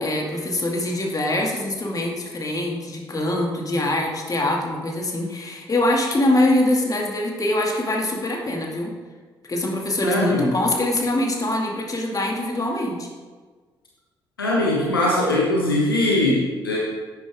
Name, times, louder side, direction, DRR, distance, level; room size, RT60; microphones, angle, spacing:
voice 1, 0.0-8.9 9.5-13.1, left 1 dB, 30° left, 0 dB, 2.3 m, -23 dB
voice 2, 10.0-10.5 14.4-16.8, left 1 dB, 90° left, -4 dB, 1.1 m, -21 dB
11.0 x 8.9 x 3.6 m, 1.4 s
figure-of-eight pair, 40°, 12 cm